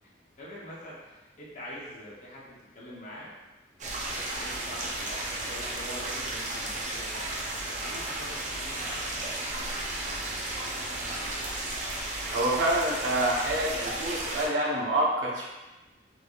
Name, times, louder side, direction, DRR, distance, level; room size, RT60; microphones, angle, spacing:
voice 1, 0.4-3.3 4.0-7.4 7.8-9.7 10.3-11.4, equal, 45° left, -6 dB, 0.7 m, -45 dB
sound 1, 3.8-14.5, right 2 dB, 45° right, 0.5 m, -34 dB
voice 2, 12.3-15.4, right 1 dB, 80° right, -3 dB, 0.8 m, -27 dB
3.5 x 3.3 x 2.3 m, 1.1 s
head